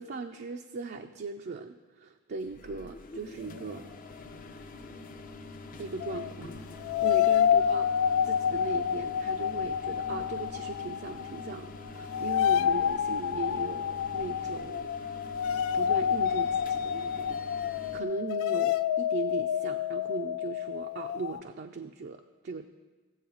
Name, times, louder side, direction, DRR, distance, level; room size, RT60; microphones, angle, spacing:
voice 1, 0.0-3.9 5.8-6.5 7.0-7.9 8.2-15.4 15.7-17.3 17.9-22.7, right 4 dB, 50° right, 4 dB, 0.4 m, -38 dB
sound 1, 2.4-18.0, left 2 dB, 40° left, 0.7 m, -45 dB
sound 2, 6.0-6.3 6.8-11.6 11.9-21.4, left 9 dB, 65° left, 0.3 m, -28 dB
15.5 x 7.7 x 3.9 m, 1.3 s
head